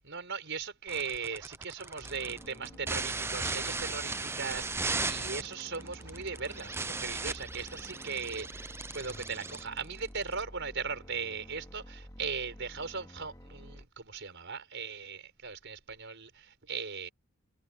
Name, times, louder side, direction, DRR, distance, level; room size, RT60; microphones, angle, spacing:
voice 1, 0.0-17.1, right 5 dB, 60° right, 5.5 m, -38 dB
sound 1, 0.9-10.4, right 3 dB, 10° right, 0.6 m, -37 dB
sound 2, 2.0-13.8, equal, 15° left, 2.9 m, -50 dB
sound 3, 2.2-3.9 4.5-9.4, right 1 dB, 90° right, 5.5 m, -56 dB
head